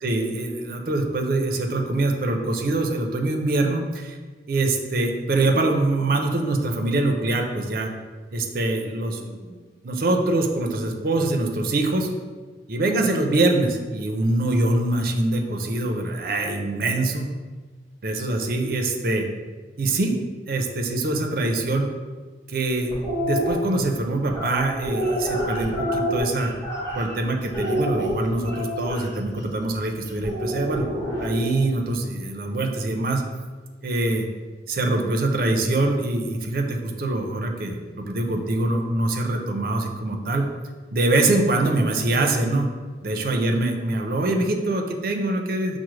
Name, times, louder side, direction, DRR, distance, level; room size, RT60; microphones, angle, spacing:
voice 1, 0.0-4.2 4.5-7.9 8.3-9.6 9.8-12.1 12.7-17.3 18.0-19.3 19.8-20.2 20.5-21.9 22.5-22.9 23.2-26.5 26.9-30.8 31.2-33.2 33.8-34.3 34.7-40.5 40.9-42.7 43.0-45.8, right 2 dB, 55° right, 3 dB, 0.5 m, -24 dB
sound 1, 22.9-23.5 24.3-27.2 27.5-29.0 30.2-31.6, equal, 20° left, 1.1 m, -27 dB
5.9 x 2.1 x 3.1 m, 1.4 s
head